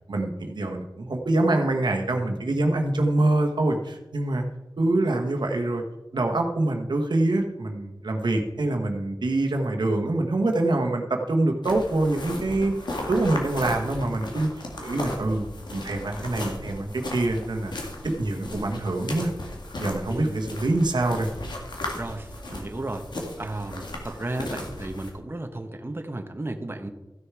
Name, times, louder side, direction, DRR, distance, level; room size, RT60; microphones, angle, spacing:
voice 1, 0.1-4.4 4.8-5.8 6.1-12.7 13.1-14.5 14.8-15.4 15.7-17.7 18.0-19.3 19.8-21.3, right 2 dB, 85° right, 3 dB, 1.2 m, -25 dB
sound 1, 11.6-25.1, left 1 dB, 90° left, 2.0 m, -36 dB
voice 2, 20.1-20.4 21.9-23.1 23.4-26.9, right 2 dB, 30° right, 6 dB, 1.0 m, -34 dB
14.5 x 6.6 x 4.8 m, 1.0 s
wide cardioid pair, 65°, 7 cm